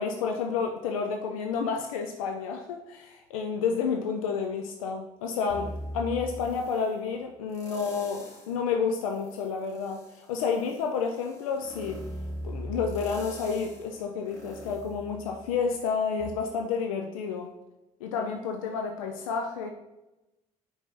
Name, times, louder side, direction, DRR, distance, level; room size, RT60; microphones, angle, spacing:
voice 1, 0.0-12.0 12.4-17.5 18.0-19.7, left 5 dB, 80° left, 4 dB, 0.5 m, -30 dB
sound 1, 5.5-6.9 7.5-8.6 9.0-15.7 16.2-16.3, equal, 15° left, 1.9 m, -41 dB
5.2 x 3.4 x 5.3 m, 0.96 s
hypercardioid pair, 50°, 17 cm